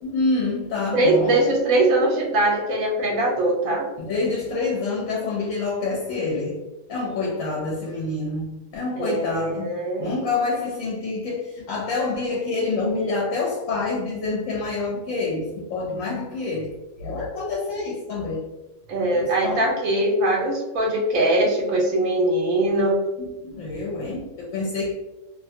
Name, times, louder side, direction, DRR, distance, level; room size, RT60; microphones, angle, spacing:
voice 1, 0.0-1.4 4.0-6.6 6.9-9.7 10.0-16.7 17.0-18.4 19.1-19.7 23.2-24.9, left 3 dB, 75° left, -4 dB, 1.0 m, -27 dB
voice 2, 0.9-3.9 9.0-10.2 18.9-23.0, right 1 dB, 80° right, 0 dB, 1.0 m, -21 dB
2.5 x 2.1 x 2.6 m, 1.0 s
omnidirectional pair, 1.5 m